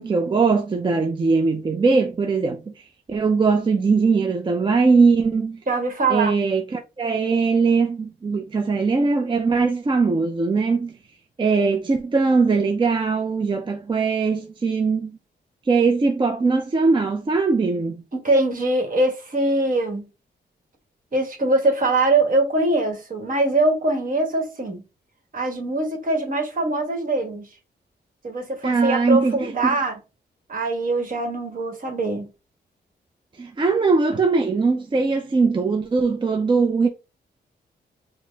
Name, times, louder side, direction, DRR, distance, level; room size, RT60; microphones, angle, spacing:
voice 1, 0.0-5.6 6.1-11.0 11.4-15.1 15.7-18.0 28.6-29.8 33.4-36.9, right 4 dB, 25° right, 0.4 m, -20 dB
voice 2, 5.7-6.3 18.1-20.0 21.1-24.8 25.3-27.5 28.2-30.0 30.5-32.3, right 2 dB, 50° right, 1.3 m, -22 dB
4.0 x 2.0 x 3.3 m
cardioid pair, 75°, 18 cm